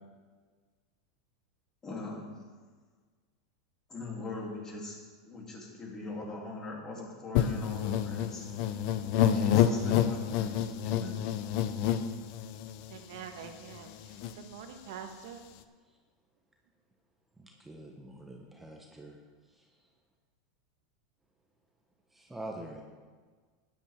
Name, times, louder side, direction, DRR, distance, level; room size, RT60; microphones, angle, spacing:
voice 1, 1.8-2.3 3.9-5.0 5.2-8.5 9.1-10.6 10.8-11.2, left 3 dB, 25° left, -2 dB, 3.1 m, -40 dB
sound 1, 7.3-12.9 13.4-13.5 13.7-14.3, left 9 dB, 55° left, 0.7 m, -28 dB
voice 2, 12.9-13.9 14.4-15.4, right 8 dB, 70° right, 5 dB, 1.4 m, -44 dB
voice 3, 17.4-19.2 19.6-19.7 22.1-22.8, right 1 dB, 10° right, 0 dB, 1.3 m, -45 dB
13.0 x 10.5 x 3.7 m, 1.5 s
hypercardioid pair, 115°, 2 cm